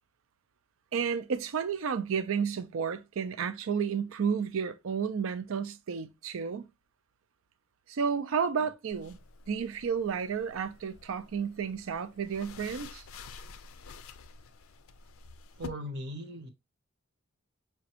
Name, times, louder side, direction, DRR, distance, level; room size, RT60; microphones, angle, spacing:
voice 1, 0.9-6.7 7.9-9.2 9.5-13.0, right 6 dB, 75° right, 0.4 m, -32 dB
sound 1, 8.9-15.7, left 5 dB, 80° left, 0.4 m, -50 dB
voice 2, 15.6-16.5, equal, 55° right, 0.8 m, -38 dB
5.0 x 2.3 x 2.7 m
head